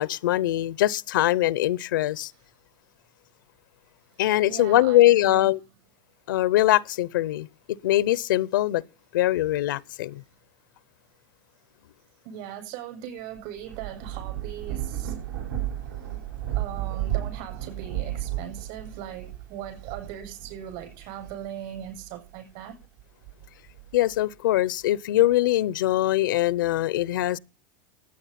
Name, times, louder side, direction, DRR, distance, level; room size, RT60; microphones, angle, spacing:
voice 1, 0.0-2.3 4.2-5.6 6.3-8.8 9.1-10.2 23.9-27.4, left 15 dB, 85° left, 0.6 m, -22 dB
voice 2, 4.5-5.5 10.1-10.3 12.2-15.2 16.5-22.8, right 10 dB, 55° right, 7.7 m, -39 dB
Thunder / Rain, 13.4-22.3 22.8-24.2, right 12 dB, 85° right, 5.7 m, -34 dB
16.0 x 9.0 x 5.8 m
supercardioid pair, 140°, 10 cm